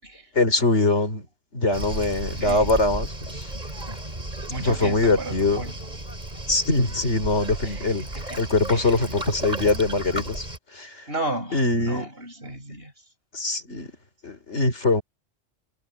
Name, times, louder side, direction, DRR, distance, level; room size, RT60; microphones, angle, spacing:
voice 1, 0.3-1.3 1.5-3.5 4.6-5.6 6.5-8.0 8.4-10.5 10.7-11.0 11.5-12.0 13.3-13.9 14.2-15.0, left 2 dB, 80° left, 4.3 m, -23 dB
Waves surf, 1.7-10.6, right 1 dB, 40° right, 3.7 m, -34 dB
voice 2, 2.4-2.8 4.5-5.8 7.6-9.0 11.1-13.0, right 2 dB, 60° right, 7.1 m, -34 dB
omnidirectional pair, 1.2 m